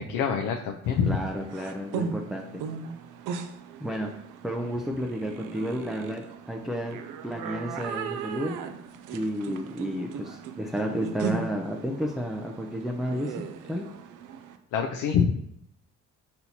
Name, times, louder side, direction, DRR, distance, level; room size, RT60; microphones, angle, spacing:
voice 1, 0.0-1.2 14.7-15.4, left 7 dB, 80° left, 3 dB, 0.5 m, -25 dB
sound 1, 0.8-14.6, right 6 dB, 90° right, 0.5 m, -38 dB
voice 2, 1.1-2.6 3.8-4.1 4.4-6.2 6.5-7.0 7.2-8.5 9.1-13.3 13.7-13.8, equal, ahead, 0 dB, 0.4 m, -31 dB
4.4 x 4.1 x 2.8 m, 0.75 s
cardioid pair, 90°, 30 cm